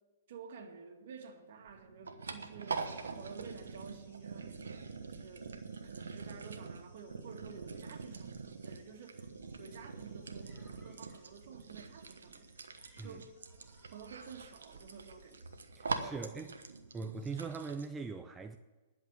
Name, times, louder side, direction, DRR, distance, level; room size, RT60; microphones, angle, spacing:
voice 1, 0.3-2.9 3.2-5.6 5.8-9.3 9.6-12.5 13.0-13.4 13.9-15.5 15.9-16.5, right 6 dB, 60° right, 2.1 m, -51 dB
sound 1, 1.6-17.9, right 4 dB, 80° right, 1.1 m, -44 dB
sound 2, 2.7-15.6, left 3 dB, 55° left, 5.1 m, -72 dB
sound 3, 10.4-11.4 12.6-15.0, equal, 10° left, 4.9 m, -68 dB
voice 2, 15.8-16.5 16.9-18.6, right 4 dB, 15° right, 0.6 m, -41 dB
11.0 x 7.3 x 9.3 m
hypercardioid pair, 115°, 0 cm